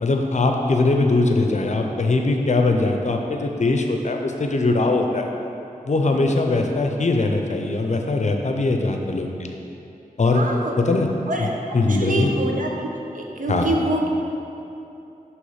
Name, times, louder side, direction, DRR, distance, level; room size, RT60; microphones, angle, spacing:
voice 1, 0.0-5.3 5.8-9.6 10.2-10.5 10.8-11.1 11.4-12.3 13.5-13.8, left 2 dB, 50° left, 3 dB, 0.6 m, -21 dB
voice 2, 10.3-10.7 11.3-11.5 11.9-12.7 13.1-14.1, right 2 dB, 65° right, 0 dB, 0.8 m, -25 dB
6.3 x 3.1 x 5.6 m, 2.8 s
wide cardioid pair, 60°, 15 cm